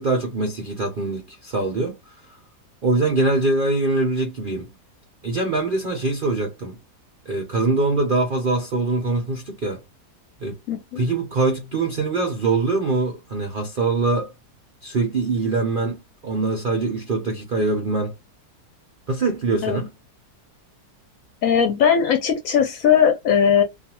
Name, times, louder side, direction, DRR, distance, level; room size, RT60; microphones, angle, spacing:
voice 1, 0.0-2.1 2.8-4.7 5.2-6.8 7.3-9.8 10.4-10.6 11.0-14.3 14.8-18.2 19.1-19.9, right 3 dB, 60° right, 0.5 m, -23 dB
voice 2, 10.7-11.0 19.6-19.8 21.4-23.6, left 8 dB, 65° left, 0.9 m, -18 dB
2.4 x 2.4 x 2.8 m
omnidirectional pair, 1.8 m